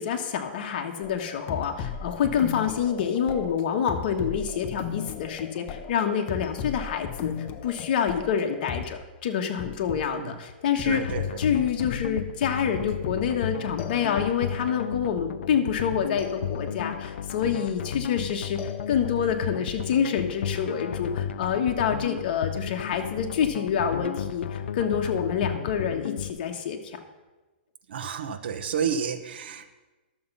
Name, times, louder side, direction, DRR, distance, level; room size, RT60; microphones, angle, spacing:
voice 1, 0.0-7.3 7.6-11.1 11.4-27.0, left 7 dB, 50° left, 5 dB, 1.3 m, -27 dB
sound 1, 1.0-9.0 9.6-10.1 10.8-12.2 12.6-13.4 13.8-14.6 16.2-17.0 18.6-19.4, left 8 dB, 25° left, 0.6 m, -37 dB
voice 2, 10.8-11.2 27.9-29.7, right 7 dB, 65° right, 9 dB, 1.1 m, -30 dB
sound 2, 10.9-26.3, left 8 dB, 80° left, 0.4 m, -34 dB
11.5 x 7.2 x 5.5 m, 1.2 s
hypercardioid pair, 160°, 6 cm